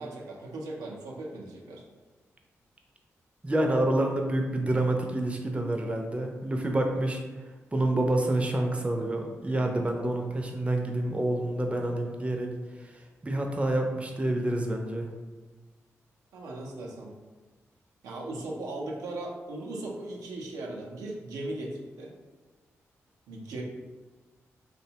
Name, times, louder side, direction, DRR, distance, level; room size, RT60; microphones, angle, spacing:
voice 1, 0.0-1.8 16.3-17.1 18.0-22.1 23.3-23.6, right 2 dB, 90° right, -2 dB, 0.4 m, -38 dB
voice 2, 3.4-7.2 7.7-12.5 12.8-15.1, right 1 dB, 20° right, 2 dB, 0.5 m, -28 dB
2.6 x 2.1 x 2.7 m, 1.3 s
supercardioid pair, 45°, 6 cm